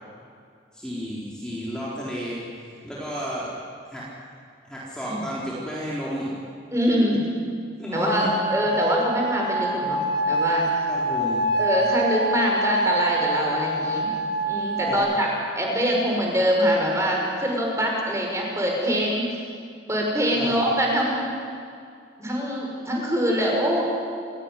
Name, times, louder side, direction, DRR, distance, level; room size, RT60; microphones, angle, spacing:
voice 1, 0.7-3.5 3.9-4.0 4.7-6.3 7.8-8.3 10.9-11.5 14.8-15.0 20.3-20.5, equal, 5° left, -7 dB, 4.1 m, -32 dB
voice 2, 6.7-7.3 7.9-10.7 11.6-14.1 14.5-15.3 15.6-19.3 19.9-21.3 22.2-23.8, equal, 15° right, -1 dB, 5.9 m, -24 dB
sound 1, 7.9-14.9, right 1 dB, 50° right, 7.9 m, -26 dB
28.5 x 18.5 x 10.0 m, 2.3 s
head